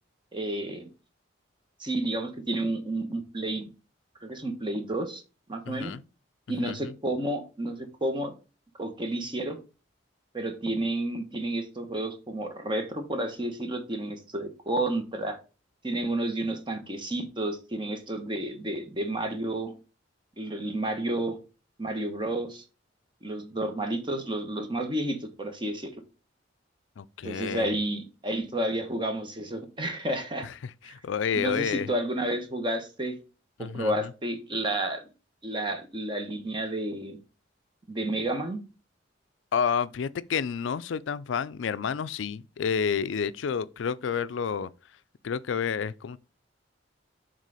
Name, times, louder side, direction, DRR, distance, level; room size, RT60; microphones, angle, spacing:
voice 1, 0.3-0.9 1.8-3.7 4.2-5.2 5.5-5.9 6.5-8.3 8.8-9.6 10.3-15.4 15.8-19.7 20.4-21.4 21.8-22.6 23.2-25.9 27.2-30.5 30.8-31.0 31.3-33.2 33.6-35.1 35.4-37.2 37.9-38.6, right 1 dB, 25° right, 1.1 m, -31 dB
voice 2, 5.7-6.0 6.7-6.9 27.0-27.7 30.4-31.9 33.6-34.1 39.5-44.7 45.2-46.2, left 6 dB, 80° left, 0.4 m, -30 dB
6.6 x 3.8 x 4.8 m
head